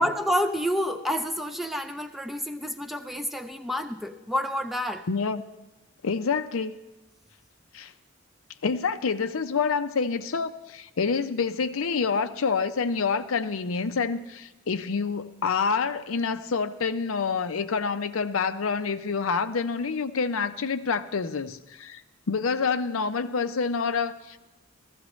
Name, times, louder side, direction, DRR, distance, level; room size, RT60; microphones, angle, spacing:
voice 1, 0.0-5.0, equal, ahead, 7 dB, 0.5 m, -29 dB
voice 2, 5.1-5.4 6.0-6.7 7.7-7.9 8.6-22.0 22.3-24.4, left 5 dB, 90° left, 10 dB, 0.6 m, -27 dB
15.0 x 14.5 x 3.1 m, 1.0 s
head